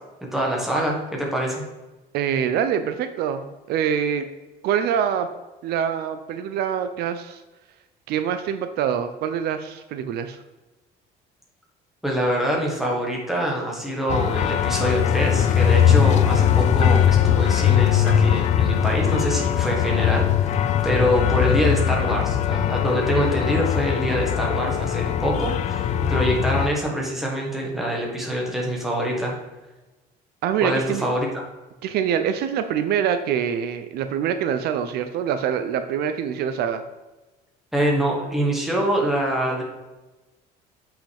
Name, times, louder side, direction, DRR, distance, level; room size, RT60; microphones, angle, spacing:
voice 1, 0.3-1.7 12.0-29.4 30.6-31.3 37.7-39.6, equal, ahead, -2 dB, 1.5 m, -25 dB
voice 2, 2.1-4.3 4.6-5.3 5.6-7.4 8.1-10.4 30.4-31.0 31.8-36.8, right 8 dB, 65° right, 9 dB, 0.5 m, -25 dB
sound 1, 14.1-26.7, left 9 dB, 40° left, 0.4 m, -20 dB
7.6 x 5.7 x 3.5 m, 1.1 s
cardioid pair, 155°, 18 cm